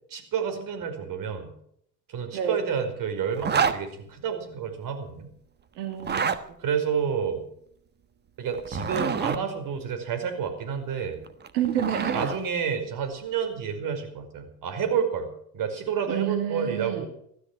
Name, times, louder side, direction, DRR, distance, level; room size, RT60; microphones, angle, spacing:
voice 1, 0.1-1.5 2.1-5.3 6.6-7.5 8.4-11.2 12.1-17.1, right 7 dB, 45° right, 6 dB, 5.1 m, -29 dB
Zipper (clothing), 3.4-3.8 5.9-6.4 8.5-9.4 11.3-12.4, right 6 dB, 20° right, 1.3 m, -27 dB
voice 2, 5.7-6.3 11.5-12.2 16.1-17.0, right 10 dB, 75° right, 5 dB, 2.4 m, -29 dB
16.0 x 13.0 x 6.2 m, 0.69 s
supercardioid pair, 105°, 47 cm